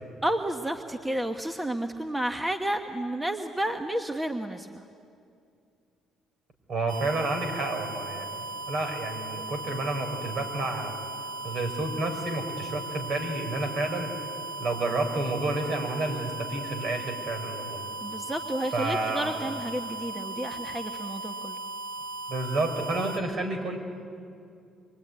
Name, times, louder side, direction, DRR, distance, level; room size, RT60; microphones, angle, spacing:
voice 1, 0.2-4.8 18.0-21.6, right 1 dB, 10° right, 6 dB, 1.1 m, -31 dB
voice 2, 6.7-10.9 11.4-14.1 14.6-17.8 18.7-19.4 22.3-23.8, right 2 dB, 55° right, 5 dB, 4.9 m, -30 dB
sound 1, 6.9-23.2, right 2 dB, 80° right, 2.7 m, -37 dB
25.0 x 23.0 x 9.5 m, 2.4 s
cardioid pair, 105°, 0 cm